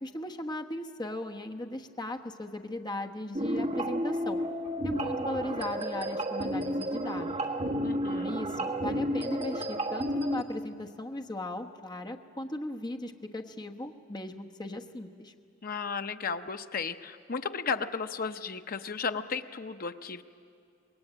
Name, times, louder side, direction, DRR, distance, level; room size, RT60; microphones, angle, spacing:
voice 1, 0.0-4.4 4.8-7.4 8.1-15.3, left 1 dB, 20° left, 4 dB, 1.2 m, -37 dB
sound 1, 3.3-10.4, right 1 dB, 35° right, 1.6 m, -31 dB
voice 2, 7.8-8.3 15.6-20.2, left 5 dB, 50° left, 8 dB, 0.8 m, -34 dB
25.0 x 20.5 x 9.0 m, 2.4 s
head